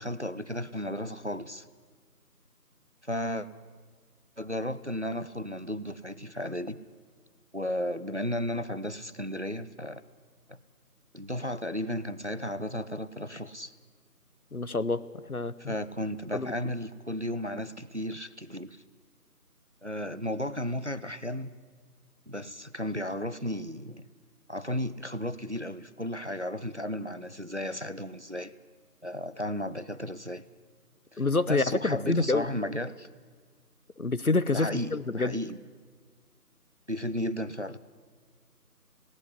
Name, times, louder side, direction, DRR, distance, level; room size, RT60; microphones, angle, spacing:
voice 1, 0.0-1.7 3.0-3.5 4.4-6.8 7.5-10.0 10.5-10.6 11.1-13.7 15.6-18.8 19.8-21.5 22.3-24.0 24.5-28.5 29.0-30.4 31.1-33.1 34.5-35.6 36.9-37.8, left 1 dB, 45° right, 15 dB, 0.6 m, -34 dB
voice 2, 14.5-15.0 15.3-15.7 16.3-16.5 31.2-32.5 34.0-35.4, left 3 dB, 65° left, 15 dB, 0.9 m, -27 dB
19.0 x 17.0 x 9.9 m, 1.5 s
figure-of-eight pair, 180°, 47 cm